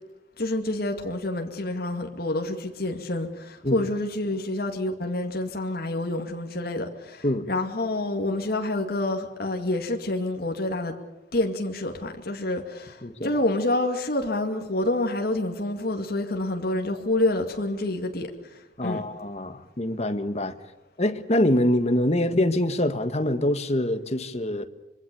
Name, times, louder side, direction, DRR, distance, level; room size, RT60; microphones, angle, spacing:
voice 1, 0.4-11.0 11.3-18.3 18.8-19.0, left 2 dB, 55° left, 2.3 m, -28 dB
voice 2, 13.0-13.3 18.8-20.5 21.0-24.6, left 1 dB, 35° left, 1.6 m, -25 dB
25.5 x 23.0 x 7.0 m
head